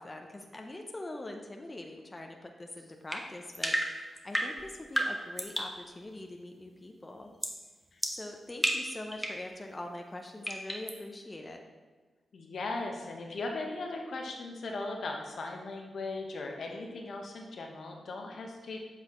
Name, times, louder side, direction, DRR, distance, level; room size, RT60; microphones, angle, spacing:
voice 1, 0.0-7.3 8.1-11.6, left 1 dB, 25° left, 3 dB, 0.5 m, -43 dB
sound 1, 3.1-5.8 7.4-7.6 8.0-9.5 10.5-11.0, equal, ahead, 0.8 m, -33 dB
voice 2, 12.3-18.9, left 2 dB, 70° left, 1 dB, 0.8 m, -38 dB
7.6 x 4.1 x 3.0 m, 1.3 s
cardioid pair, 65°, 0 cm